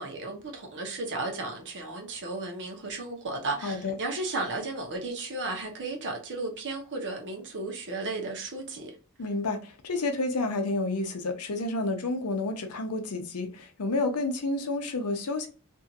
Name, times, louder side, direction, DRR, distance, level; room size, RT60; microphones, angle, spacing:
voice 1, 0.0-8.9, right 2 dB, 55° right, 0.9 m, -34 dB
voice 2, 3.6-3.9 9.2-15.5, left 2 dB, 80° left, 0.7 m, -30 dB
2.7 x 2.4 x 2.7 m
head